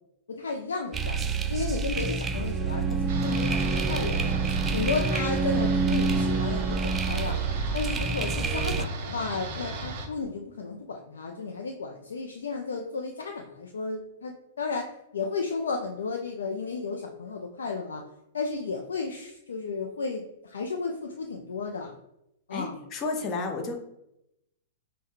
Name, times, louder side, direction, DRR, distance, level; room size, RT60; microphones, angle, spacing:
voice 1, 0.3-1.2 1.5-4.4 4.7-7.4 7.7-18.0 18.3-22.0 22.5-22.8, left 4 dB, 65° left, 2 dB, 0.4 m, -33 dB
sound 1, 0.9-8.8, right 4 dB, 20° right, 0.3 m, -27 dB
sound 2, 3.1-10.1, right 1 dB, 45° right, 0.7 m, -37 dB
voice 2, 22.5-23.8, left 3 dB, 30° left, 3 dB, 0.8 m, -32 dB
5.4 x 2.2 x 3.0 m, 0.84 s
figure-of-eight pair, 105°, 0 cm